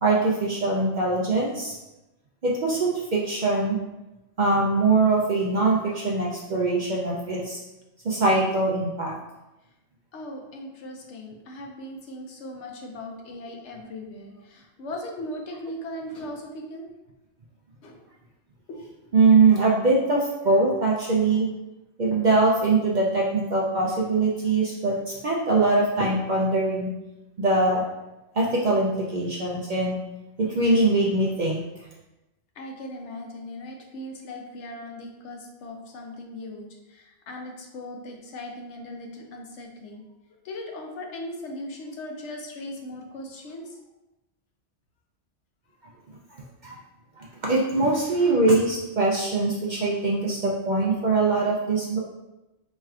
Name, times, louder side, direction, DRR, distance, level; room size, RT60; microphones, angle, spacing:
voice 1, 0.0-1.8 2.4-3.8 4.4-7.6 8.0-9.1 19.1-21.5 22.0-26.9 27.4-27.8 28.3-30.0 30.4-31.6 46.6-46.8 47.2-52.0, right 3 dB, 60° right, -3 dB, 0.5 m, -22 dB
voice 2, 10.1-16.9 17.8-18.0 18.7-18.8 32.5-40.0 40.4-43.8 46.4-46.5, left 1 dB, 75° left, 2 dB, 1.0 m, -38 dB
4.3 x 3.1 x 2.4 m, 1.0 s
omnidirectional pair, 1.2 m